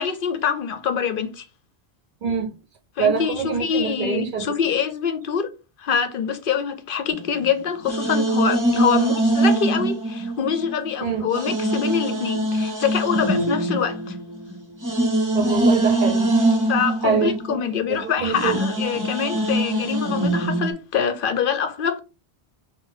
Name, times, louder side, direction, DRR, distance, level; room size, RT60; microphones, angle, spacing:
voice 1, 0.0-1.5 3.0-5.5 5.8-14.2 16.7-22.0, left 7 dB, 65° left, 0.7 m, -25 dB
voice 2, 2.2-2.5 3.0-4.7 11.0-11.3 15.3-16.3 17.0-17.6 17.9-18.6, right 6 dB, 60° right, 0.7 m, -25 dB
sound 1, 7.1-10.9 11.3-20.7, right 1 dB, 20° right, 0.8 m, -23 dB
3.9 x 2.1 x 4.2 m
omnidirectional pair, 1.0 m